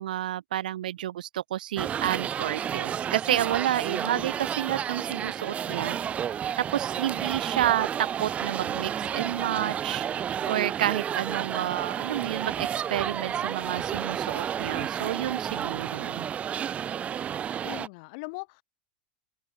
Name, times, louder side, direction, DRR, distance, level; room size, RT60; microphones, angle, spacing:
voice 1, 0.0-6.0 6.7-7.9 8.2-10.0 10.5-16.3, right 12 dB, 80° right, 0.8 m, -30 dB
sound 1, 1.8-17.9, right 9 dB, 30° right, 1.0 m, -31 dB
voice 2, 17.6-18.6, left 29 dB, 60° left, 3.2 m, -40 dB
open air
hypercardioid pair, 110°, 4 cm